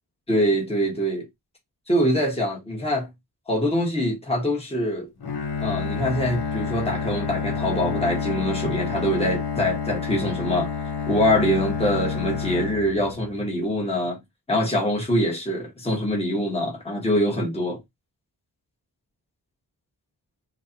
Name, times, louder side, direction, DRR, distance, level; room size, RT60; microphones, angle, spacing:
voice 1, 0.3-1.3 1.9-3.1 3.5-5.1 5.6-10.7 11.1-14.2 14.5-17.8, equal, 15° left, 1.4 m, -24 dB
Bowed string instrument, 5.2-13.4, left 5 dB, 70° left, 1.0 m, -29 dB
4.4 x 2.4 x 2.8 m
wide cardioid pair, 100°, 39 cm